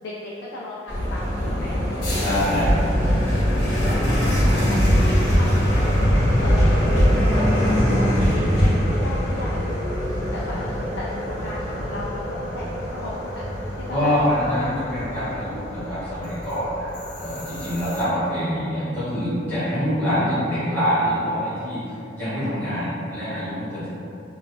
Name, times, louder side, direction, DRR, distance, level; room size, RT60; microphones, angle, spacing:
voice 1, 0.0-1.8 3.4-4.3 4.7-5.8 6.4-7.0 7.3-9.7 10.3-13.4 13.7-14.7, left 2 dB, 85° left, -6 dB, 0.4 m, -36 dB
sound 1, 0.9-18.0, equal, 65° left, 1.2 m, -22 dB
voice 2, 2.2-2.8 3.6-3.8 13.9-16.9 17.2-21.8 22.1-23.9, equal, 10° left, -15 dB, 1.4 m, -25 dB
3.0 x 2.7 x 2.8 m, 2.6 s
head